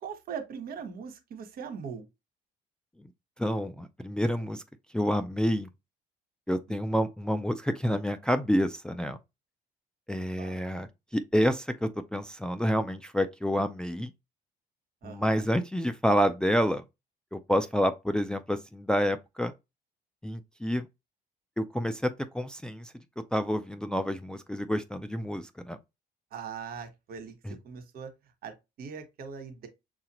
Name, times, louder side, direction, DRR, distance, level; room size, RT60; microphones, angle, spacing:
voice 1, 0.0-2.1 10.1-10.6 15.0-15.5 26.3-28.1 28.4-29.7, right 6 dB, 65° right, 1.2 m, -41 dB
voice 2, 3.4-4.6 4.9-5.7 6.5-9.2 10.1-14.1 15.0-16.8 17.3-19.5 20.2-20.9 21.6-22.9 23.3-25.8 27.4-27.6, equal, 5° left, 0.4 m, -28 dB
6.6 x 2.4 x 2.9 m
cardioid pair, 110°, 17 cm